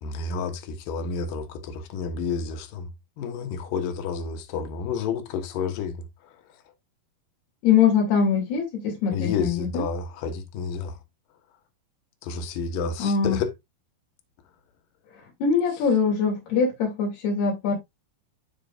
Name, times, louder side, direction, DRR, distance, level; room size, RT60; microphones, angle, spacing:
voice 1, 0.0-2.9 3.2-6.0 9.1-11.0 12.2-13.5, left 5 dB, 65° left, 2.9 m, -30 dB
voice 2, 7.6-9.8 13.0-13.4 15.4-17.7, left 6 dB, 85° left, 4.9 m, -22 dB
13.0 x 5.1 x 2.6 m
omnidirectional pair, 4.5 m